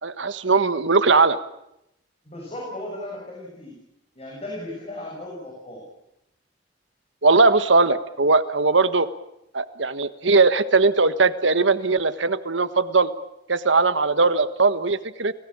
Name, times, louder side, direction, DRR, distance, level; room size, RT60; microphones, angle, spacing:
voice 1, 0.0-1.4 7.2-9.1 9.5-13.1 13.5-15.3, right 3 dB, 80° right, 12 dB, 1.5 m, -19 dB
voice 2, 2.3-3.7 4.2-5.8, left 1 dB, 35° left, -1 dB, 6.9 m, -36 dB
30.0 x 18.5 x 8.9 m, 0.84 s
head